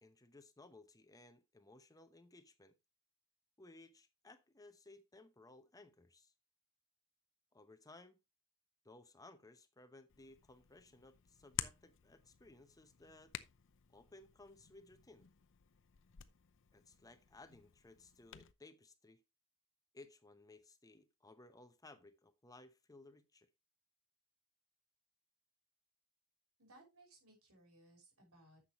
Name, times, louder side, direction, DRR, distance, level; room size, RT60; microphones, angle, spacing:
voice 1, 0.0-2.7 3.6-6.3 7.5-8.2 8.8-13.3 13.9-15.3 16.7-19.2 19.9-23.5, left 2 dB, 15° left, 0.8 m, -60 dB
Hands, 10.1-18.5, left 11 dB, 60° left, 0.7 m, -51 dB
voice 2, 26.6-28.6, right 1 dB, 90° right, 5.7 m, -64 dB
10.5 x 7.6 x 3.0 m
head